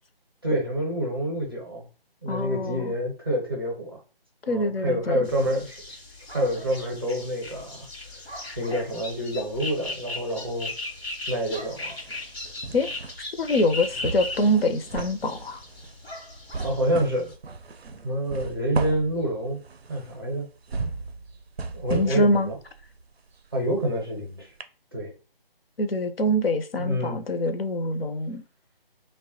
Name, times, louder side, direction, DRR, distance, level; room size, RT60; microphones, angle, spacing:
voice 1, 0.4-1.9 2.2-4.0 4.5-5.8 6.3-7.9 8.6-10.7 11.3-11.9 16.6-17.3 18.0-19.6 19.9-20.5 21.8-22.6 23.5-24.5 24.9-25.1 26.8-27.2, equal, 25° right, 0.5 m, -27 dB
voice 2, 2.3-2.9 4.5-5.3 12.7-12.9 13.4-15.6 21.9-22.5 25.8-28.4, left 1 dB, 70° left, 0.5 m, -25 dB
sound 1, 5.2-17.3, left 2 dB, 90° left, 0.9 m, -38 dB
sound 2, 9.0-10.1 10.4-24.2 24.6-24.7, right 4 dB, 90° right, 0.5 m, -37 dB
3.1 x 2.1 x 2.8 m
figure-of-eight pair, 150°, 30 cm